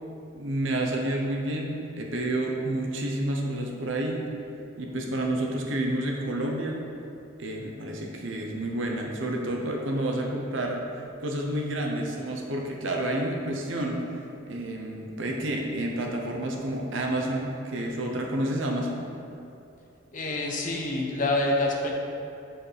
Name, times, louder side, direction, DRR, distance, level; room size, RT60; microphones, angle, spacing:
voice 1, 0.3-4.2 4.8-6.8 7.4-10.8 11.2-14.0 14.5-19.1, right 1 dB, 70° right, 0 dB, 0.8 m, -29 dB
voice 2, 20.1-21.9, left 2 dB, 40° left, 0 dB, 0.8 m, -27 dB
7.8 x 4.3 x 3.3 m, 2.7 s
head